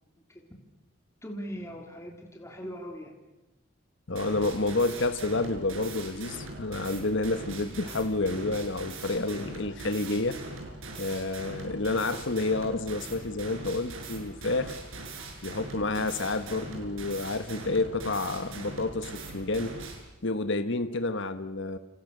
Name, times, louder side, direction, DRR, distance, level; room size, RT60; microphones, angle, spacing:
voice 1, 1.2-3.1, equal, 15° left, 1 dB, 3.6 m, -40 dB
voice 2, 4.1-10.4 11.0-14.8 15.4-19.8 20.2-21.8, left 2 dB, 60° left, 9 dB, 1.3 m, -29 dB
sound 1, 4.2-20.0, right 2 dB, 75° right, 7.1 m, -41 dB
30.0 x 29.0 x 6.8 m, 1.0 s
head